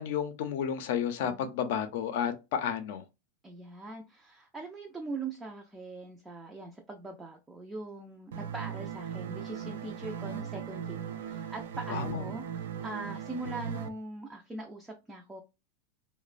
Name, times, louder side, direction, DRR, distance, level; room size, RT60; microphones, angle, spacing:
voice 1, 0.0-3.0 11.9-12.3, left 8 dB, 60° left, 0.5 m, -32 dB
voice 2, 1.1-1.5 3.4-15.4, right 2 dB, 10° right, 0.4 m, -42 dB
sound 1, 8.3-13.9, right 8 dB, 80° right, 0.4 m, -38 dB
3.0 x 2.1 x 2.4 m
supercardioid pair, 160°, 0 cm